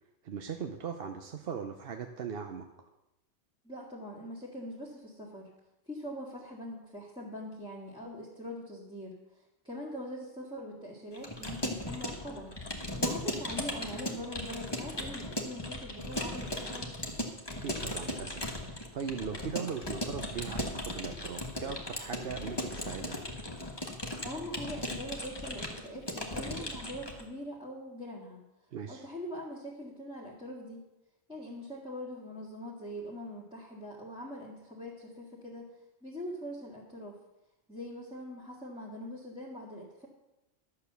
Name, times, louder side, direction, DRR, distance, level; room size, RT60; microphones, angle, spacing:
voice 1, 0.2-2.9 17.6-23.2 28.7-29.0, right 7 dB, 60° right, 6 dB, 0.9 m, -39 dB
voice 2, 3.6-5.5 5.9-9.2 9.6-12.5 13.0-16.9 24.2-28.4 28.9-30.8 31.3-35.7 36.0-37.2 37.7-40.1, equal, 5° right, -7 dB, 1.8 m, -42 dB
Keyboard (musical) / Computer keyboard, 11.1-27.2, left 1 dB, 20° left, 1.4 m, -37 dB
11.5 x 6.8 x 6.7 m, 0.97 s
omnidirectional pair, 1.2 m